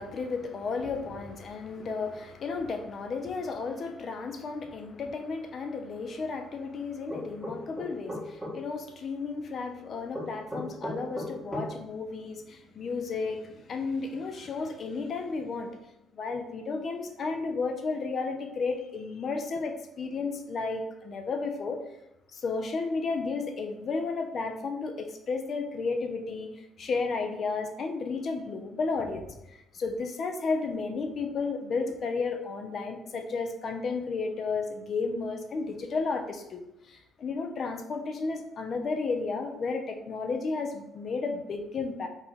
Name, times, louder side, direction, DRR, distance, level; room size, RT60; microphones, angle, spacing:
voice 1, 0.0-15.7 16.1-21.8 22.3-36.6 36.9-42.1, left 4 dB, 40° left, 5 dB, 0.6 m, -33 dB
sound 1, 7.1-8.5 10.1-11.7, equal, ahead, 1.6 m, -35 dB
4.7 x 2.7 x 4.0 m, 0.91 s
cardioid pair, 150°, 0 cm